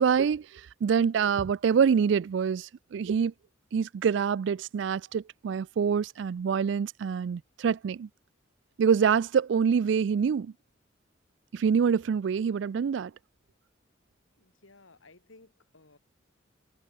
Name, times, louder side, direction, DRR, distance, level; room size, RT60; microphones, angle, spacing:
voice 1, 0.0-3.3 3.7-8.1 8.8-10.5 11.5-13.1, right 6 dB, 65° right, 0.3 m, -26 dB
voice 2, 14.4-16.0, left 3 dB, 90° left, 2.7 m, -57 dB
head